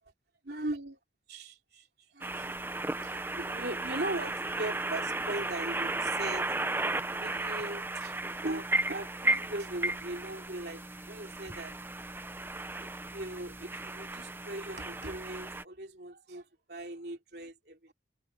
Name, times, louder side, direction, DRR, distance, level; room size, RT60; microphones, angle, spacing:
voice 1, 0.4-1.0 1.3-6.5 7.1-11.8 12.8-17.9, right 2 dB, 65° right, 3.2 m, -40 dB
sound 1, 2.2-15.6, right 2 dB, 10° right, 0.7 m, -34 dB
head